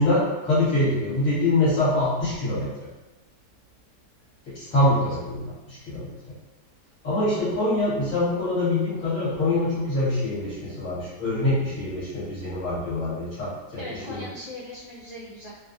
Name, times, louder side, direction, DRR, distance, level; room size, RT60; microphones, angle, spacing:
voice 1, 0.0-2.9 4.5-6.1 7.0-14.3, left 2 dB, 50° left, -11 dB, 2.1 m, -24 dB
voice 2, 13.8-15.5, left 1 dB, 70° left, -8 dB, 0.4 m, -39 dB
3.9 x 2.5 x 2.6 m, 1.1 s
omnidirectional pair, 1.8 m